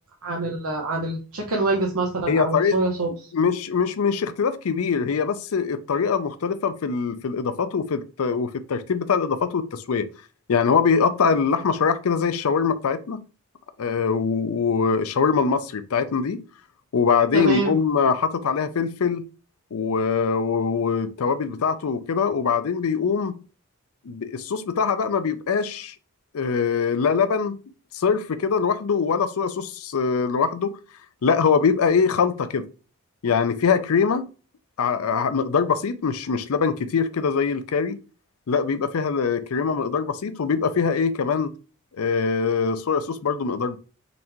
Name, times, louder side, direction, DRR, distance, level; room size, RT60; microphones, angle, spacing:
voice 1, 0.2-3.1 17.3-17.7, right 2 dB, 85° right, 0.8 m, -25 dB
voice 2, 2.3-2.8 3.1-10.1 10.5-13.2 13.8-16.4 16.9-19.2 19.7-23.3 24.1-25.9 26.3-27.6 27.9-30.8 31.2-32.7 33.2-34.3 34.8-38.0 38.5-41.5 42.0-43.8, left 5 dB, 80° left, 0.5 m, -23 dB
4.0 x 3.3 x 2.9 m
head